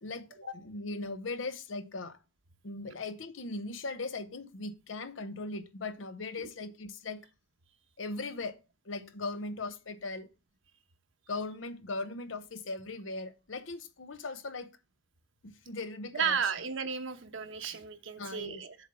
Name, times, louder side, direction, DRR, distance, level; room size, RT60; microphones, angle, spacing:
voice 1, 0.0-2.2 2.6-7.3 8.0-8.6 8.9-10.3 11.3-14.7 15.4-16.5 18.2-18.6, left 3 dB, 70° left, 0.8 m, -39 dB
voice 2, 16.1-18.8, right 6 dB, 75° right, 1.0 m, -33 dB
7.2 x 4.1 x 6.5 m
head